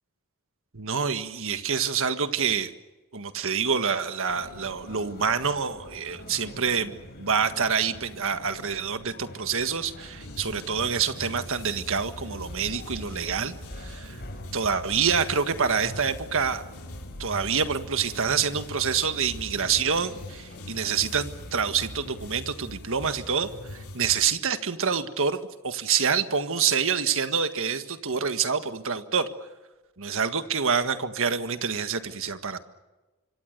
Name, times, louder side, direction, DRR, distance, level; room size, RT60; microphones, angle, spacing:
voice 1, 0.7-2.7 3.1-14.2 14.5-16.6 17.2-29.3 30.0-32.6, right 6 dB, 65° right, 9 dB, 1.7 m, -27 dB
sound 1, 4.3-22.3, left 1 dB, 45° left, 4.9 m, -45 dB
sound 2, 10.2-24.2, left 1 dB, 75° left, 4.6 m, -42 dB
25.5 x 25.5 x 6.8 m, 1.1 s
head